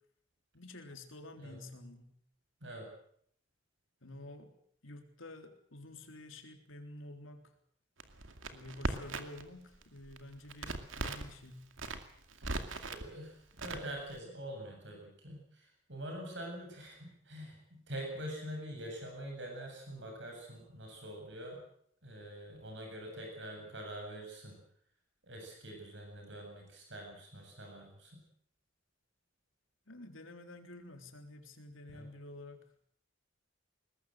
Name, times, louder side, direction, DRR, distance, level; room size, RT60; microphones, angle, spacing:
voice 1, 0.5-2.1 4.0-4.5 4.8-7.5 8.5-11.7 29.9-32.6, left 2 dB, 80° left, 5 dB, 3.7 m, -50 dB
Crackle, 8.0-9.5 9.7-11.3 11.7-13.0 13.6-14.2, right 2 dB, 75° right, 2.4 m, -39 dB
voice 2, 12.8-21.6 22.0-24.6 25.2-28.2 31.9-32.1, right 1 dB, 60° right, 2 dB, 7.7 m, -45 dB
22.0 x 19.5 x 7.9 m, 0.66 s
head